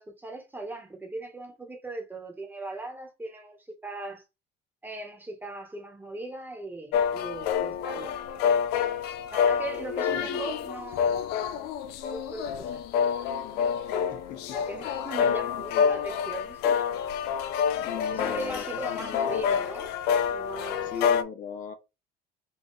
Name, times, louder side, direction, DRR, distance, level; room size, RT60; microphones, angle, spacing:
voice 1, 0.0-4.2 4.8-8.1 9.3-11.8 12.1-12.8 13.9-16.8 18.1-19.9 20.3-20.9, right 2 dB, 10° right, 1.4 m, -39 dB
sound 1, 6.9-21.2, left 7 dB, 85° left, 0.6 m, -28 dB
voice 2, 13.9-14.6 15.2-15.8 17.4-19.6 20.8-21.7, left 7 dB, 55° left, 1.0 m, -39 dB
3.8 x 2.6 x 4.1 m
cardioid pair, 120°, 16 cm